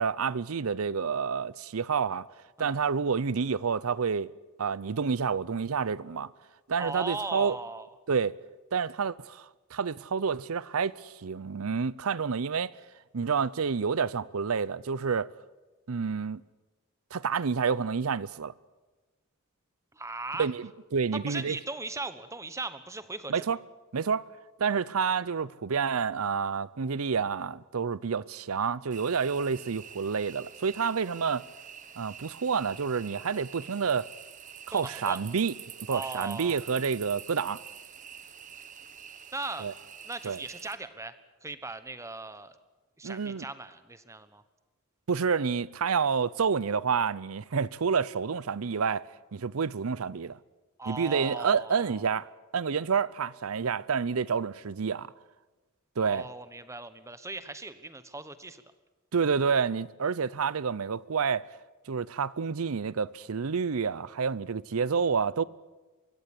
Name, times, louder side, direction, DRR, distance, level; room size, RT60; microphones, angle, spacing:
voice 1, 0.0-2.3 2.6-4.3 4.6-6.3 6.7-7.6 8.1-8.4 8.7-12.7 13.1-15.3 15.9-16.4 17.1-18.5 20.4-21.6 23.3-23.6 23.9-24.2 24.6-31.4 32.0-34.1 34.7-35.5 35.9-37.6 39.6-39.7 40.2-40.4 43.0-43.5 45.1-49.0 49.3-50.4 50.9-55.1 56.0-56.3 59.1-61.5 61.9-65.4, right 6 dB, 70° right, 0.6 m, -29 dB
voice 2, 6.8-7.9 19.9-20.5 21.1-23.4 34.7-35.2 35.9-36.6 39.3-39.7 40.0-41.1 41.4-42.6 43.0-44.4 50.8-52.1 56.0-58.6, right 3 dB, 15° right, 1.1 m, -38 dB
sound 1, 28.9-40.8, right 8 dB, 35° right, 1.2 m, -47 dB
23.0 x 16.0 x 8.5 m
head